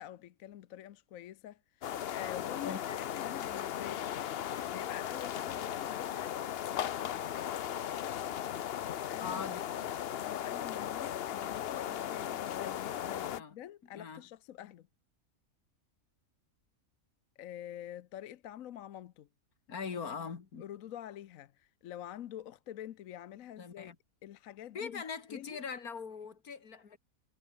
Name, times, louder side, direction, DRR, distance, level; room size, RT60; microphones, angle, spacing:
voice 1, 0.0-2.8 3.1-7.4 9.1-9.4 10.2-14.9 17.4-19.3 20.6-23.9 24.2-25.0 25.3-25.6, left 11 dB, 70° left, 1.1 m, -47 dB
sound 1, 1.8-13.4, left 10 dB, 55° left, 0.7 m, -37 dB
voice 2, 2.6-3.0 9.2-9.6 13.0-13.5 13.9-14.2 19.7-20.6 23.6-24.0 24.7-27.0, left 6 dB, 90° left, 2.4 m, -41 dB
omnidirectional pair, 1.5 m